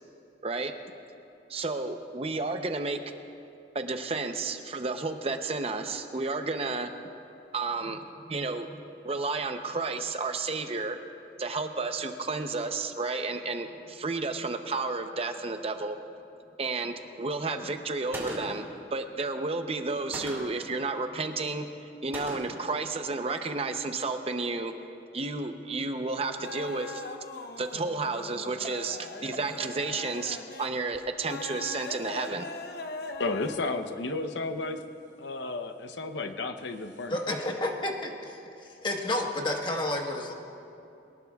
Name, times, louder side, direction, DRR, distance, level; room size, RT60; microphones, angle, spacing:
voice 1, 0.4-0.7 1.5-3.0 3.7-6.9 7.5-8.7 9.0-11.0 11.4-16.0 16.6-18.6 18.9-21.7 22.0-24.7 25.1-27.0 27.6-32.5, right 3 dB, 35° right, 7 dB, 0.7 m, -32 dB
Gunshot gunfire, 18.1-18.7 20.1-20.7 22.1-22.7, right 1 dB, 15° right, 2.5 m, -38 dB
sound 1, 26.4-33.6, left 3 dB, 60° left, 0.8 m, -41 dB
voice 2, 33.2-34.8 35.2-37.2, left 3 dB, 90° left, 8 dB, 0.8 m, -32 dB
voice 3, 37.1-40.3, left 1 dB, 25° left, 1 dB, 1.3 m, -31 dB
22.5 x 19.0 x 2.4 m, 2.7 s
head